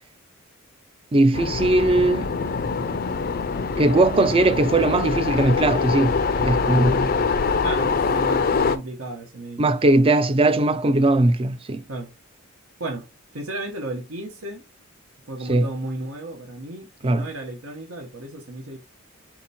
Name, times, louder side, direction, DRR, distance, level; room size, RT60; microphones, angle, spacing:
voice 1, 1.1-2.3 3.8-7.1 9.6-11.8 15.5-15.7 17.0-17.3, right 2 dB, 25° right, 0.4 m, -19 dB
sound 1, 1.3-8.8, left 4 dB, 45° left, 0.5 m, -24 dB
voice 2, 7.6-9.6 11.9-12.1 12.8-13.0 13.3-14.6 15.3-18.8, right 2 dB, 80° right, 1.1 m, -34 dB
4.3 x 2.9 x 4.1 m
head